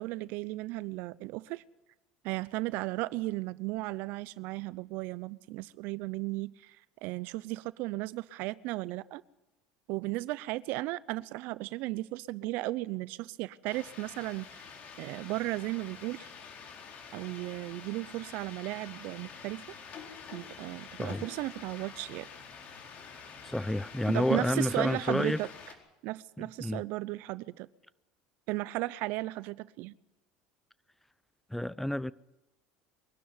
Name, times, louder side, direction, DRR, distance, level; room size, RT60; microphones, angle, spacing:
voice 1, 0.0-1.6 2.2-6.8 7.0-9.2 9.9-14.6 15.0-16.3 17.1-19.6 20.3-22.3 24.1-25.5 26.0-27.7 28.5-29.9, right 19 dB, 65° right, 0.7 m, -35 dB
sound 1, 13.7-25.7, left 6 dB, 50° left, 4.4 m, -48 dB
voice 2, 23.4-25.4 26.4-26.8 31.5-32.1, left 1 dB, 5° left, 0.7 m, -30 dB
23.0 x 12.0 x 9.7 m
supercardioid pair, 100°, 4 cm